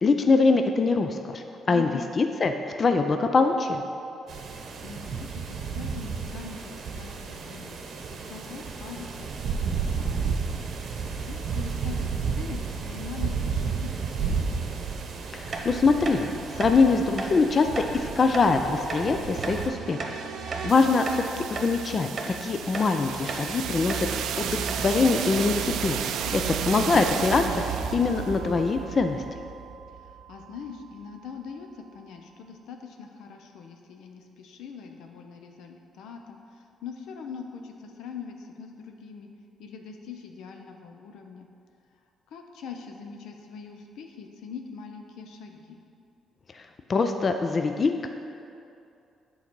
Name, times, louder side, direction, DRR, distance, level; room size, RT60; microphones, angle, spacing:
voice 1, 0.0-1.9 2.2-2.5 2.8-3.8 15.3-16.3 16.6-20.1 20.4-26.0 26.3-29.2 46.5-46.6 46.9-48.1, left 4 dB, 40° left, 6 dB, 0.4 m, -23 dB
voice 2, 1.7-2.1 4.8-7.8 8.1-10.6 11.2-14.6 20.5-20.7 26.2-26.7 30.0-39.3 39.6-41.5 42.3-45.8, left 6 dB, 85° left, 4 dB, 0.7 m, -42 dB
sound 1, 4.3-19.7, right 5 dB, 65° right, 0.8 m, -32 dB
sound 2, 15.5-15.7 16.0-16.2 16.6-16.7 17.2-17.3 17.7-17.9 18.3-18.5 18.9-19.0 19.4-19.6 20.0-20.7 21.0-21.2 21.5-21.7 22.2-22.3 22.7-22.9 23.3-23.5 23.9-24.1 24.3-24.4 24.7-24.9, right 3 dB, 40° right, 1.0 m, -34 dB
sound 3, 18.9-30.8, right 8 dB, 80° right, 0.4 m, -33 dB
8.5 x 4.0 x 6.1 m, 2.6 s
cardioid pair, 90°, 0 cm